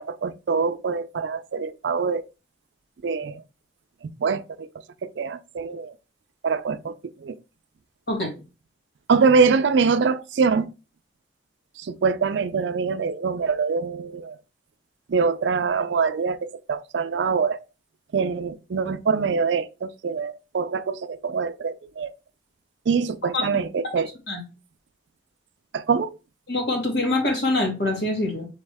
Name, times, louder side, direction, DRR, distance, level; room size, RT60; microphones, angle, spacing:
voice 1, 0.0-2.2 3.0-3.4 4.0-4.7 5.0-5.9 6.4-7.4 9.1-10.7 11.8-14.4 15.1-17.6 18.1-22.1 22.9-24.1 25.7-26.2, right 5 dB, 80° right, 0.4 m, -24 dB
voice 2, 26.5-28.5, left 2 dB, 65° left, 1.7 m, -24 dB
4.1 x 3.1 x 3.4 m
head